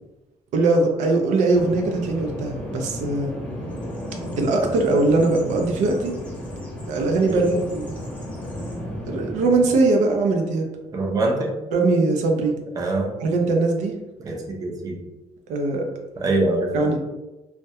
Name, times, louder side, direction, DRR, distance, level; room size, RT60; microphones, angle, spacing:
voice 1, 0.5-3.3 4.4-6.1 6.9-7.9 9.1-10.7 11.7-12.6 13.2-13.9 15.5-15.8 16.7-17.0, right 3 dB, 85° right, 2 dB, 0.4 m, -21 dB
Bird vocalization bird call bird song, 1.5-9.9, equal, 10° left, 0.7 m, -33 dB
voice 2, 10.9-11.5 12.8-13.1 14.2-15.0 16.2-16.7, right 2 dB, 30° right, 0 dB, 0.5 m, -24 dB
2.2 x 2.1 x 2.7 m, 1.1 s
cardioid pair, 135°, 12 cm